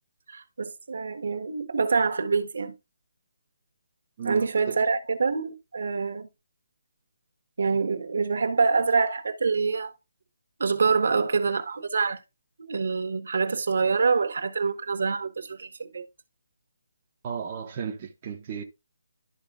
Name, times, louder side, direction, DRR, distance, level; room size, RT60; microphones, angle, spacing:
voice 1, 0.3-2.7 4.2-6.3 7.6-9.9 10.6-12.2 12.6-16.0, right 4 dB, 60° right, 1.3 m, -26 dB
voice 2, 4.2-4.7 17.2-18.6, right 7 dB, 20° right, 0.7 m, -34 dB
12.5 x 4.4 x 2.5 m
hypercardioid pair, 175°, 0 cm